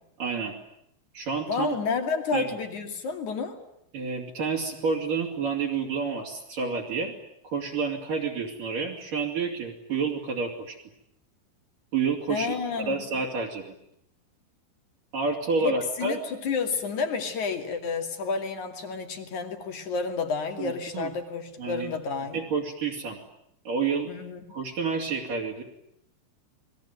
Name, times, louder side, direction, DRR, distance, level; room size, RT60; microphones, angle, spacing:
voice 1, 0.2-0.5 1.1-1.8 2.3-2.5 3.9-7.1 7.4-10.8 11.9-13.7 15.1-16.2 20.6-21.1 21.6-21.9 22.3-23.2 23.7-24.1 24.5-25.6, right 5 dB, 50° right, 4 dB, 4.0 m, -29 dB
voice 2, 1.5-3.6 12.3-13.1 15.6-22.4 24.1-24.4, left 5 dB, 45° left, 6 dB, 3.2 m, -30 dB
29.0 x 21.0 x 9.3 m, 0.74 s
omnidirectional pair, 5.5 m